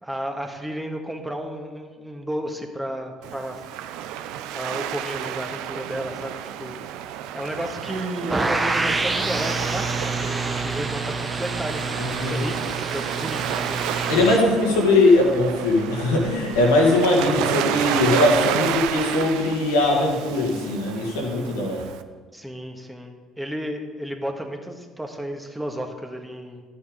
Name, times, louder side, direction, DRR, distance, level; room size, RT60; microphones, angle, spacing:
voice 1, 0.0-3.6 4.5-6.7 7.3-13.8 17.2-17.4 22.3-26.6, equal, 10° right, 2 dB, 1.5 m, -32 dB
Waves surf, 3.2-22.0, right 10 dB, 70° right, 0.4 m, -31 dB
sound 1, 8.3-14.4, right 3 dB, 25° right, 1.0 m, -27 dB
voice 2, 12.0-12.4 14.1-21.8, left 2 dB, 80° left, 0 dB, 1.9 m, -20 dB
11.5 x 6.8 x 5.0 m, 1.4 s
hypercardioid pair, 55°, 0 cm